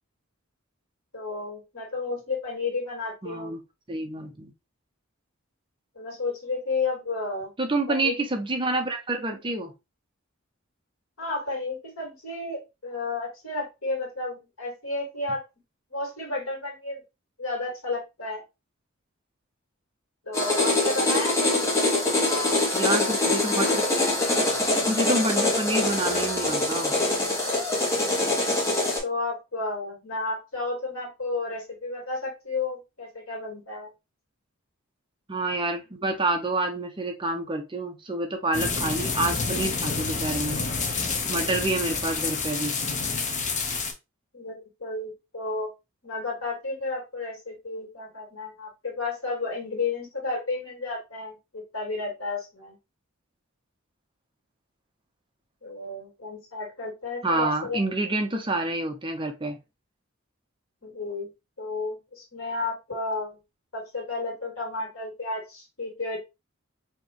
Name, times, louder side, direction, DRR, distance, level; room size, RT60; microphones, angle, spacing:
voice 1, 1.1-3.6 6.0-7.5 7.9-8.2 11.2-15.4 15.9-17.0 17.4-18.4 20.3-22.2 28.7-33.9 44.3-45.7 46.0-52.8 55.6-57.8 60.8-61.3 61.6-63.4 63.7-66.2, left 3 dB, 75° left, 0 dB, 2.1 m, -32 dB
voice 2, 3.2-3.6 3.9-4.5 7.6-9.7 22.7-23.9 24.9-26.9 35.3-40.6 41.3-42.8 57.2-59.6, right 2 dB, 25° right, 5 dB, 0.7 m, -28 dB
sound 1, 20.3-29.0, left 2 dB, 15° left, 1.6 m, -24 dB
sound 2, 38.5-43.9, left 4 dB, 35° left, 0.8 m, -28 dB
4.3 x 3.0 x 2.9 m, 0.24 s
head